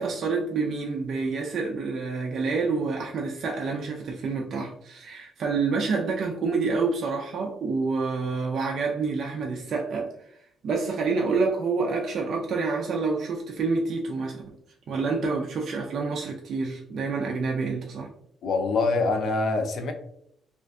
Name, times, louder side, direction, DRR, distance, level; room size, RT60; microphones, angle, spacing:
voice 1, 0.0-10.4 10.6-14.4 14.9-18.1, right 4 dB, 50° right, -1 dB, 0.3 m, -28 dB
voice 2, 18.4-19.9, left 3 dB, 60° left, 5 dB, 0.4 m, -24 dB
2.5 x 2.4 x 2.2 m, 0.72 s
cardioid pair, 130°, 0 cm